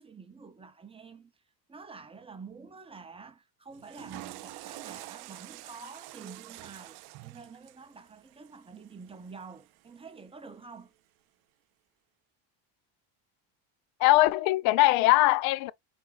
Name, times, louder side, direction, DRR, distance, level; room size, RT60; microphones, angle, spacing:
voice 1, 0.0-1.4 1.7-10.9, right 4 dB, 10° right, 0.6 m, -48 dB
Water / Toilet flush, 3.7-9.9, right 18 dB, 55° right, 0.5 m, -47 dB
voice 2, 14.0-15.7, left 18 dB, 75° left, 0.5 m, -21 dB
4.4 x 3.5 x 2.4 m
cardioid pair, 135°, 48 cm